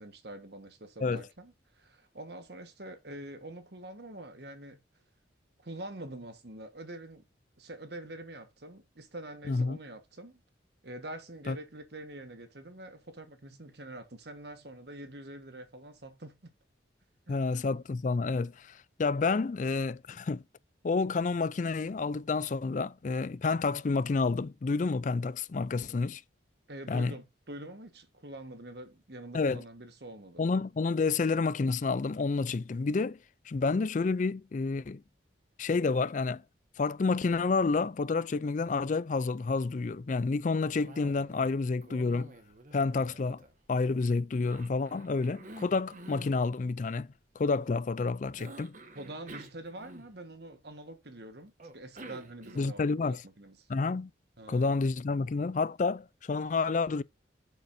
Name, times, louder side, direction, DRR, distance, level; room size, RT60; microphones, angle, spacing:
voice 1, 0.0-4.8 5.6-7.2 7.6-10.4 10.8-16.5 17.3-17.6 26.7-30.4 48.9-53.7 54.4-54.9, right 1 dB, 60° right, 1.5 m, -45 dB
voice 2, 9.5-9.8 11.5-11.6 17.3-20.4 20.8-26.2 26.9-27.1 29.3-29.6 30.4-33.2 33.5-35.0 35.6-36.4 36.8-42.3 42.7-43.4 43.7-47.1 47.4-48.7 52.6-53.2 53.7-54.1 54.5-57.0, left 4 dB, 40° left, 0.4 m, -29 dB
Cough, 40.7-41.6 41.8-43.9 44.4-46.4 48.4-50.4 51.6-52.9, right 2 dB, 45° right, 1.4 m, -49 dB
10.5 x 7.0 x 2.7 m
head